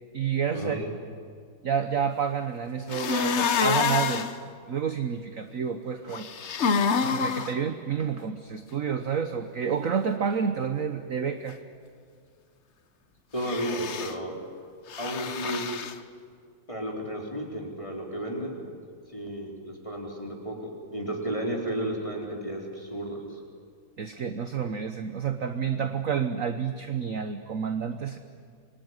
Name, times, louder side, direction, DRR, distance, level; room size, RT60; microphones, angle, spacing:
voice 1, 0.1-0.9 1.6-4.3 4.7-6.3 7.0-11.6 24.0-28.2, right 7 dB, 50° right, 8 dB, 1.2 m, -29 dB
sound 1, 2.9-4.3 6.1-7.5 13.4-14.1 14.9-15.9, left 6 dB, 50° left, 0.8 m, -27 dB
voice 2, 13.3-14.3 15.0-15.8 16.7-18.6 19.1-23.4, right 1 dB, 15° left, 0 dB, 3.9 m, -33 dB
26.5 x 21.5 x 9.6 m, 2.2 s
omnidirectional pair, 2.3 m